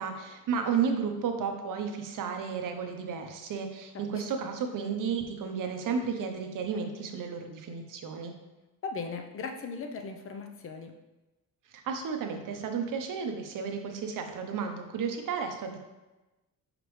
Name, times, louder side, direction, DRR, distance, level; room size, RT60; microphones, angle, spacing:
voice 1, 0.0-8.3 11.8-15.8, right 6 dB, 60° right, 5 dB, 0.8 m, -33 dB
voice 2, 8.8-10.9, left 4 dB, 35° left, 5 dB, 0.6 m, -38 dB
5.9 x 5.1 x 3.1 m, 1.1 s
cardioid pair, 175°, 37 cm